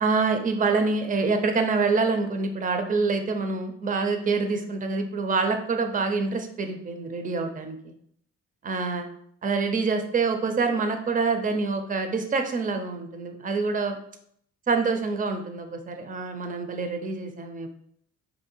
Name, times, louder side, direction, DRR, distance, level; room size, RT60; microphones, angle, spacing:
voice 1, 0.0-7.9 8.6-9.1 9.4-14.0 14.7-17.7, right 4 dB, 25° right, 6 dB, 0.6 m, -26 dB
3.3 x 2.7 x 4.3 m, 0.67 s
cardioid pair, 90°, 30 cm